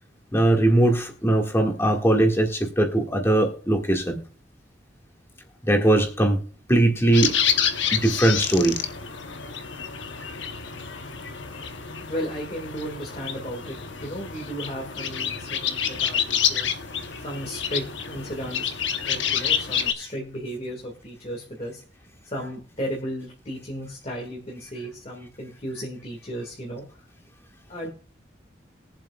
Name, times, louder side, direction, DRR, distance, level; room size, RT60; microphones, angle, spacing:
voice 1, 0.3-4.2 5.7-6.4 6.7-7.3 7.9-8.8, right 1 dB, 15° left, 2 dB, 1.8 m, -20 dB
sound 1, 7.1-19.9, left 8 dB, 85° left, 1.0 m, -28 dB
voice 2, 12.1-16.8 17.2-18.7 19.0-21.8 22.2-26.9 27.7-27.9, equal, 35° left, -1 dB, 2.0 m, -34 dB
22.0 x 7.5 x 2.3 m, 0.42 s
head